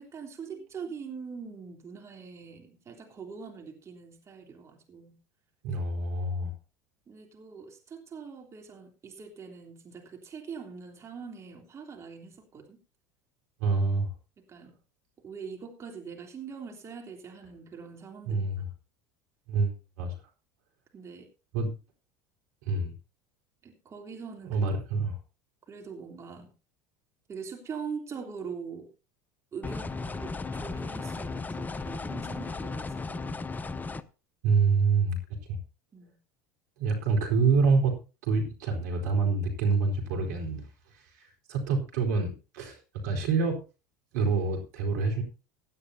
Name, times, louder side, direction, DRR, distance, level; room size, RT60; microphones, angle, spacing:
voice 1, 0.0-5.1 7.1-12.8 14.5-14.7 15.2-18.4 20.9-21.3 23.6-24.6 25.7-26.5 27.3-28.9 29.5-33.4 35.9-36.1, right 5 dB, 30° right, 2 dB, 3.3 m, -43 dB
voice 2, 5.6-6.5 13.6-14.1 18.3-18.7 19.5-20.1 21.5-21.7 22.7-22.9 24.5-25.2 34.4-35.2 35.5-35.6 36.8-38.0 38.2-40.7 40.9-42.8 43.0-43.6 44.1-45.2, right 4 dB, 70° right, 2 dB, 4.5 m, -26 dB
sound 1, 29.6-34.0, left 3 dB, 20° left, 0.8 m, -35 dB
17.0 x 11.5 x 2.8 m, 0.32 s
hypercardioid pair, 80°, 9 cm